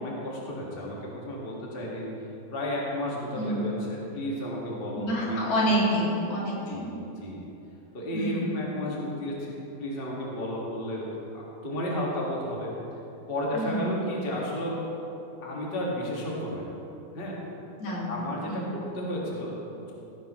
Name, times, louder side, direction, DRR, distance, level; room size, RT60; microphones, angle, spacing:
voice 1, 0.0-2.1 2.5-5.5 6.7-6.9 7.2-7.4 7.9-11.1 11.3-12.7 13.3-14.8 15.4-16.7 17.1-17.4 18.1-19.9, equal, 35° left, -4 dB, 0.9 m, -33 dB
voice 2, 4.9-6.9 8.1-8.6 13.5-13.9 17.8-18.2 18.5-18.7, equal, 50° left, -5 dB, 3.5 m, -28 dB
18.0 x 10.5 x 3.1 m, 2.9 s
omnidirectional pair, 4.3 m